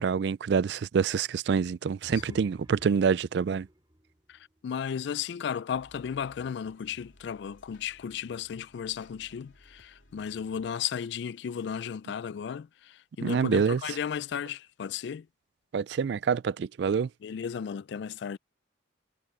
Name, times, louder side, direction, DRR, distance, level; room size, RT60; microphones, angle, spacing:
voice 1, 0.0-3.7 13.2-13.8 15.7-17.1, right 6 dB, 65° right, 0.3 m, -26 dB
sound 1, 2.0-5.2, equal, 20° right, 2.9 m, -53 dB
voice 2, 4.3-15.3 17.2-18.4, left 8 dB, 65° left, 0.3 m, -35 dB
sound 2, 5.7-10.7 11.2-11.7, left 1 dB, 85° left, 3.3 m, -59 dB
head